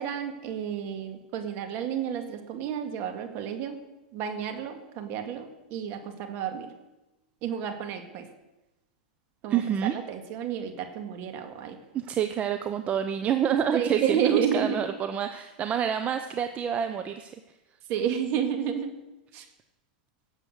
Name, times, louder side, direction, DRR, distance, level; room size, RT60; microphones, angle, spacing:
voice 1, 0.0-3.8 4.1-6.7 7.4-8.3 9.4-11.8 13.7-14.9 17.9-19.0 19.3-19.5, right 8 dB, 50° right, 6 dB, 2.0 m, -31 dB
voice 2, 9.5-9.9 11.9-17.3, right 9 dB, 30° right, 8 dB, 0.7 m, -28 dB
17.5 x 7.4 x 6.4 m, 1.0 s
hypercardioid pair, 115°, 5 cm